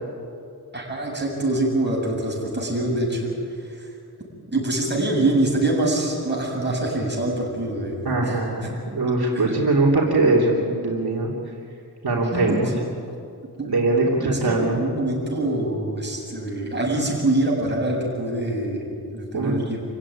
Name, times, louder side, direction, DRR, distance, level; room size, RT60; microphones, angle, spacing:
voice 1, 0.7-3.4 3.7-3.9 4.5-8.4 9.2-9.6 12.3-12.8 13.6-13.7 14.0-19.8, right 2 dB, 30° right, -2 dB, 7.8 m, -25 dB
voice 2, 8.0-11.3 12.0-12.7 13.6-14.7 19.3-19.5, right 2 dB, 80° right, -3 dB, 3.2 m, -21 dB
27.5 x 16.0 x 9.9 m, 2.5 s
wide cardioid pair, 95°, 38 cm